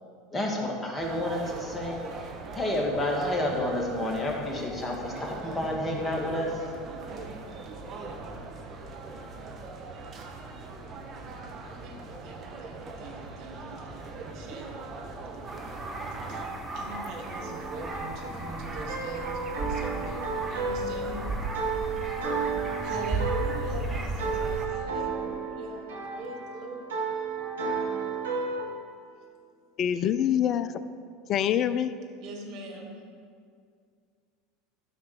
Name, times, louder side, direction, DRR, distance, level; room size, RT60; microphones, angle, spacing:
voice 1, 0.3-2.0 2.5-6.7, left 1 dB, 15° left, -1 dB, 2.0 m, -30 dB
sound 1, 1.0-16.4, right 3 dB, 40° right, 1.5 m, -41 dB
voice 2, 11.8-15.1 16.1-16.4 16.7-21.3 22.8-26.9 32.2-32.9, right 2 dB, 55° right, 0 dB, 1.9 m, -42 dB
sound 2, 15.5-24.7, right 3 dB, 20° right, 1.4 m, -35 dB
sound 3, 17.4-28.6, right 4 dB, 80° right, 1.7 m, -33 dB
voice 3, 29.8-30.8 31.3-31.9, left 10 dB, 40° left, 14 dB, 0.5 m, -25 dB
13.5 x 5.8 x 4.9 m, 2.2 s
figure-of-eight pair, 75°, 0 cm